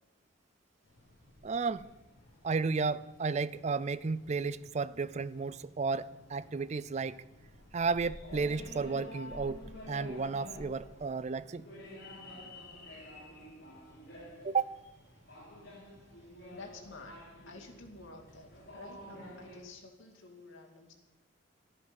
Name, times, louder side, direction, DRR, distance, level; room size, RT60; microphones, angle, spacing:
sound 1, 0.8-19.6, left 1 dB, 55° left, 5.9 m, -50 dB
voice 1, 1.4-1.9 2.4-7.2 7.7-9.6 9.9-11.6 14.4-14.8, right 4 dB, 35° right, 0.4 m, -33 dB
voice 2, 16.5-21.0, left 3 dB, 85° left, 2.3 m, -51 dB
13.0 x 10.5 x 6.0 m
head